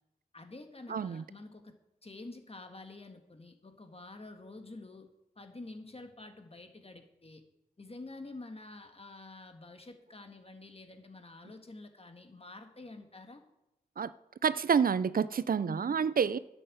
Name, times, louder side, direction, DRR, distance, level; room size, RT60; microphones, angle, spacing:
voice 1, 0.3-5.1 5.3-7.4 7.8-13.4 15.6-15.9, left 2 dB, 40° left, 1.7 m, -48 dB
voice 2, 0.9-1.2 14.0-14.1 14.4-16.4, right 6 dB, 70° right, 0.4 m, -28 dB
11.0 x 7.9 x 7.8 m
wide cardioid pair, 75°, 15 cm